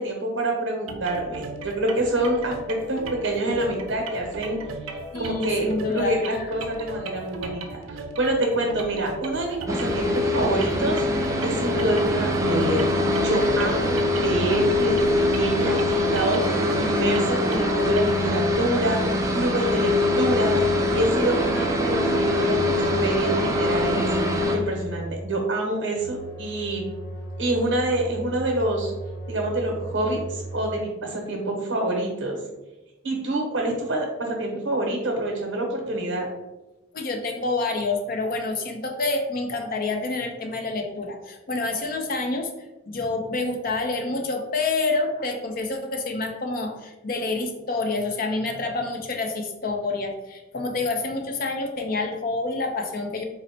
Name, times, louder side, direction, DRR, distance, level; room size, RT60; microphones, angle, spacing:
voice 1, 0.0-4.6 4.9-11.1 11.4-12.9 13.2-19.0 19.3-20.6 20.9-24.1 24.5-26.8 27.4-28.9 29.3-32.4 33.0-36.3, right 1 dB, 65° right, 0 dB, 0.9 m, -26 dB
sound 1, 0.9-18.3, right 2 dB, 90° right, 0.5 m, -37 dB
voice 2, 5.1-6.5 36.9-42.5 42.9-53.2, left 3 dB, 45° left, 3 dB, 0.5 m, -28 dB
sound 2, 9.7-24.6, left 2 dB, 15° right, 0.3 m, -23 dB
sound 3, 13.5-15.0 15.6-17.0 17.6-19.1 19.7-21.2 21.9-23.4 23.9-25.3 26.0-30.7, right 1 dB, 80° left, 1.1 m, -37 dB
4.1 x 2.1 x 4.1 m, 1.0 s
head